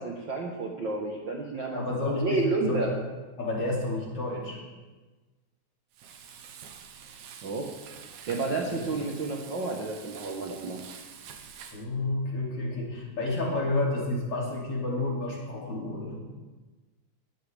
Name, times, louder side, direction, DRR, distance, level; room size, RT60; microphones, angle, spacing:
voice 1, 0.0-2.9 7.4-7.7 8.3-10.8, right 3 dB, 55° right, 0 dB, 1.4 m, -31 dB
voice 2, 1.7-2.8 3.4-4.6 8.7-8.8 11.7-16.2, left 2 dB, 50° left, -3 dB, 3.7 m, -30 dB
Frying (food), 5.9-11.8, right 7 dB, 75° right, 2.4 m, -47 dB
19.5 x 12.5 x 3.5 m, 1.2 s
omnidirectional pair, 3.5 m